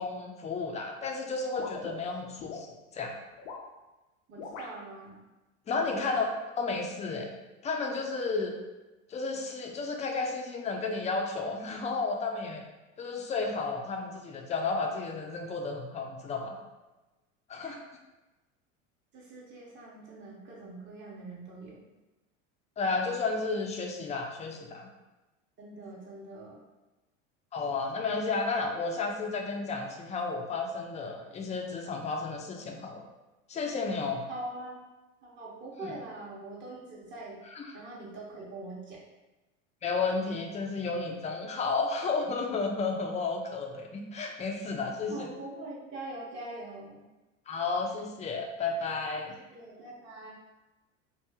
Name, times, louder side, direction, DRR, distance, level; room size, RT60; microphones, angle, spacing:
voice 1, 0.0-3.2 5.7-6.3 6.6-7.3 7.6-8.5 9.1-12.6 13.0-16.6 17.5-17.8 22.8-24.9 27.5-33.0 33.5-34.3 37.5-37.7 39.8-45.3 47.5-49.3, left 4 dB, 20° left, 2 dB, 0.5 m, -32 dB
sound 1, 1.6-2.7 3.3-3.7 4.4-4.7, left 4 dB, 80° left, 0.7 m, -41 dB
voice 2, 4.3-5.2 5.7-6.2 17.6-17.8 19.1-21.8 25.6-26.6 34.3-34.8 35.2-37.4 37.7-39.0 45.1-47.0 49.5-50.3, right 2 dB, 30° right, -5 dB, 1.1 m, -43 dB
2.9 x 2.6 x 3.5 m, 1.1 s
hypercardioid pair, 90°, 39 cm